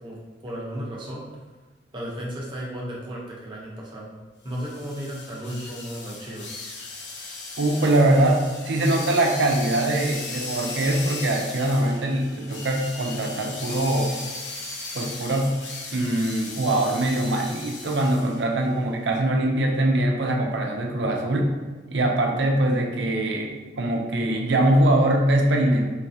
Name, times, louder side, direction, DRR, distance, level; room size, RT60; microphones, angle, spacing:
voice 1, 0.0-1.3 1.9-4.1 4.4-6.7, equal, 25° right, -4 dB, 0.7 m, -34 dB
sound 1, 4.5-18.4, left 3 dB, 85° left, 0.6 m, -37 dB
voice 2, 7.6-14.2 14.9-15.6 15.9-21.6 21.9-23.5 23.8-25.9, right 1 dB, 75° right, 1 dB, 0.5 m, -22 dB
3.8 x 2.3 x 2.7 m, 1.3 s
head